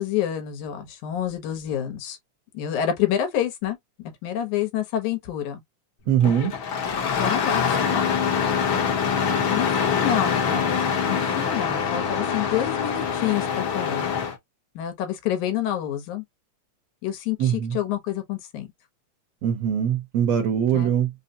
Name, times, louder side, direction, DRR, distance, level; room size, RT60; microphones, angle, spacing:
voice 1, 0.0-2.2 2.5-5.6 7.2-8.1 9.5-14.1 14.8-16.2 17.0-18.7 20.7-20.9, left 10 dB, 80° left, 2.4 m, -28 dB
voice 2, 6.1-6.5 17.4-17.8 19.4-21.1, right 9 dB, 65° right, 1.9 m, -22 dB
Engine starting, 6.2-14.3, left 6 dB, 60° left, 1.4 m, -24 dB
5.5 x 2.1 x 2.7 m
omnidirectional pair, 3.4 m